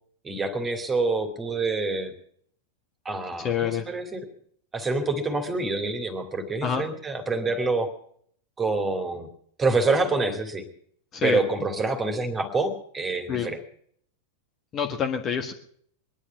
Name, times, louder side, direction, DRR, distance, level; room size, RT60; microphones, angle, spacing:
voice 1, 0.2-2.1 3.0-4.3 4.7-7.9 8.6-9.3 9.6-10.7 11.2-13.6, right 3 dB, 20° right, 8 dB, 2.6 m, -26 dB
voice 2, 3.4-3.8 6.6-6.8 11.1-11.4 13.3-13.5 14.7-15.5, left 7 dB, 30° left, 5 dB, 1.6 m, -27 dB
21.0 x 11.0 x 5.9 m, 0.63 s
figure-of-eight pair, 90°, 0 cm